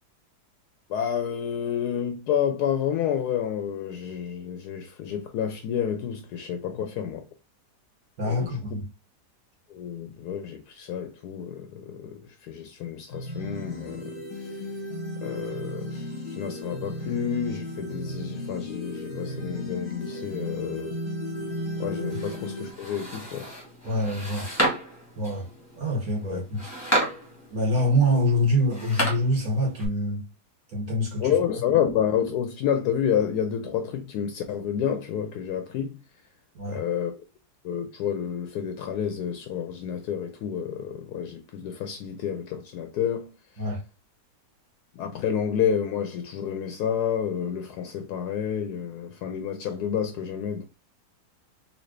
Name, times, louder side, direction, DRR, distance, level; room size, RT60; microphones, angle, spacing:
voice 1, 0.9-7.2 8.2-8.6 9.7-14.7 15.2-21.0 21.8-23.5 26.2-26.4 31.2-36.0 36.7-37.1 37.6-43.3 43.6-43.7 44.9-50.6, left 8 dB, 75° left, 1.1 m, -29 dB
voice 2, 8.2-8.9 23.8-24.5 25.2-25.5 25.8-26.7 27.5-30.2 30.7-31.3 36.5-36.8 43.6-43.8, equal, 55° right, 2.3 m, -25 dB
sound 1, 13.1-22.7, left 1 dB, 40° left, 1.0 m, -35 dB
sound 2, 21.3-29.9, right 1 dB, 10° left, 1.2 m, -32 dB
4.0 x 2.6 x 3.2 m
omnidirectional pair, 1.8 m